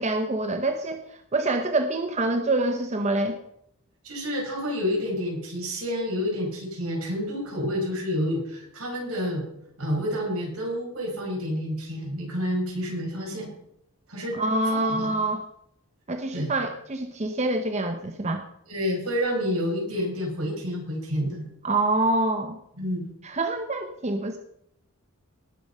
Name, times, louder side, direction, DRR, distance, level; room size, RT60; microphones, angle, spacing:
voice 1, 0.0-3.4 14.3-15.4 16.1-18.4 21.6-22.6 23.2-24.4, right 2 dB, 30° right, 6 dB, 0.8 m, -26 dB
voice 2, 4.0-9.4 9.8-13.5 14.1-14.4 14.7-15.1 16.3-16.5 18.7-21.4 22.8-23.0, equal, 80° right, -1 dB, 5.8 m, -29 dB
18.5 x 7.1 x 5.5 m, 0.75 s
head